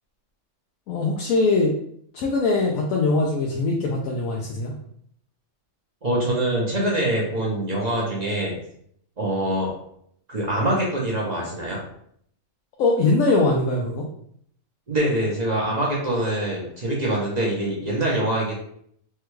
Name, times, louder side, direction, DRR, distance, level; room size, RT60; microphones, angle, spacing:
voice 1, 0.9-1.7 2.1-4.7 12.8-14.1, left 3 dB, 80° left, -1 dB, 1.0 m, -21 dB
voice 2, 6.0-8.6 9.2-9.7 10.3-11.8 14.9-18.5, right 1 dB, 40° right, -4 dB, 0.6 m, -24 dB
3.4 x 2.2 x 3.0 m, 0.67 s
omnidirectional pair, 1.5 m